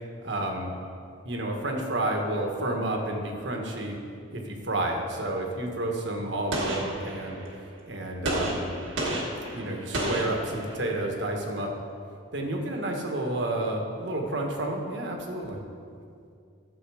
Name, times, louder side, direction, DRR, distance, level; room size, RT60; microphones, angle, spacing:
voice 1, 0.2-0.7 1.2-4.0 4.3-7.4 7.8-8.6 9.5-11.7 12.3-15.6, right 1 dB, 60° right, 2 dB, 1.4 m, -30 dB
Gunshot gunfire, 6.5-7.6 8.2-11.0, right 1 dB, 75° right, 1.6 m, -31 dB
11.5 x 7.4 x 4.9 m, 2.5 s
head